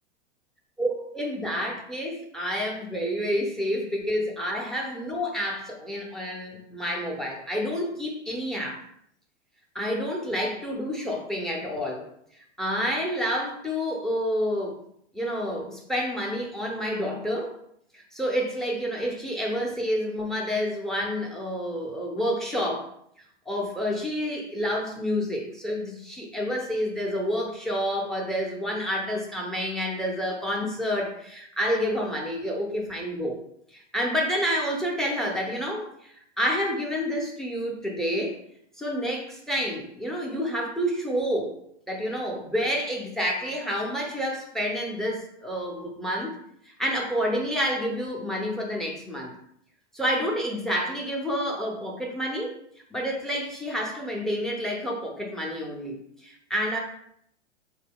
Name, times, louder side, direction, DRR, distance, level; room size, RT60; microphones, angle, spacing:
voice 1, 0.8-8.8 9.7-12.0 12.6-14.8 15.1-17.6 17.9-22.9 23.5-33.4 33.7-38.4 38.8-41.5 41.9-46.4 46.7-49.3 49.9-52.6 52.9-56.8, equal, ahead, 0 dB, 0.4 m, -29 dB
3.9 x 2.2 x 3.4 m, 0.71 s
hypercardioid pair, 115°, 35 cm